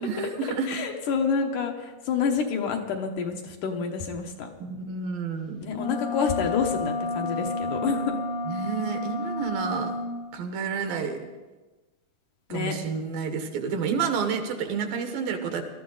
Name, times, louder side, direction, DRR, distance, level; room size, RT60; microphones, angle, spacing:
voice 1, 0.0-0.7 4.6-5.6 8.5-9.9 10.3-11.3 12.5-15.6, right 6 dB, 75° right, 6 dB, 2.9 m, -30 dB
voice 2, 0.7-4.5 5.6-8.2 12.5-12.8, left 5 dB, 70° left, 3 dB, 2.5 m, -28 dB
sound 1, 5.7-10.1, left 2 dB, 85° left, 0.9 m, -30 dB
20.0 x 13.0 x 3.9 m, 1.2 s
omnidirectional pair, 4.1 m